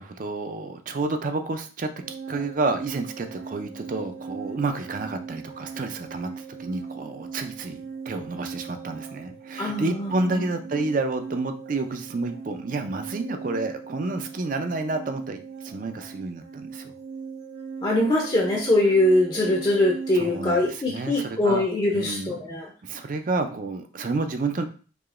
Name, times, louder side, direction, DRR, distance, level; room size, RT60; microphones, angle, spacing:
voice 1, 0.0-7.8 8.1-16.9 20.1-21.6 21.9-22.5 22.8-24.6, right 3 dB, 45° right, 7 dB, 0.4 m, -30 dB
sound 1, 2.0-20.6, right 5 dB, 85° right, 1.6 m, -39 dB
voice 2, 9.6-10.4 17.8-22.7, left 1 dB, 25° left, -1 dB, 0.5 m, -22 dB
4.8 x 2.8 x 2.5 m, 0.39 s
head